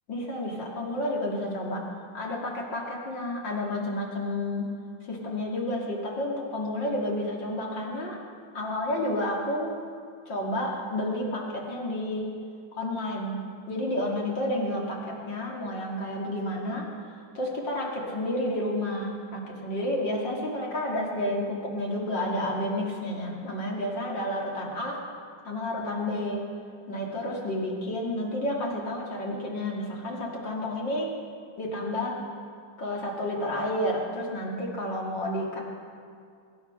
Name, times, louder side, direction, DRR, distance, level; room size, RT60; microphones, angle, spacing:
voice 1, 0.1-4.7 5.0-8.2 8.5-9.8 10.3-12.4 12.8-16.9 17.3-25.0 25.4-26.4 26.9-31.1 31.6-32.2 32.8-35.6, left 1 dB, 65° left, -2 dB, 3.0 m, -30 dB
23.5 x 10.5 x 5.7 m, 2.3 s
omnidirectional pair, 2.2 m